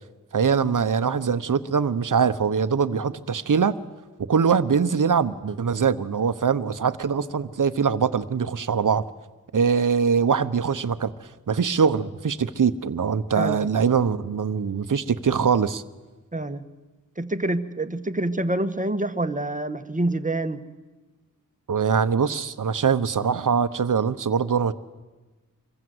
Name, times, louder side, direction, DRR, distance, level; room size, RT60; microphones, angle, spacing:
voice 1, 0.3-3.8 4.3-9.0 9.5-15.8 21.7-24.7, right 6 dB, 65° right, 12 dB, 1.1 m, -23 dB
voice 2, 16.3-16.6 17.2-20.6, right 2 dB, 25° right, 9 dB, 1.5 m, -26 dB
26.5 x 23.5 x 8.1 m, 1.2 s
wide cardioid pair, 75°, 34 cm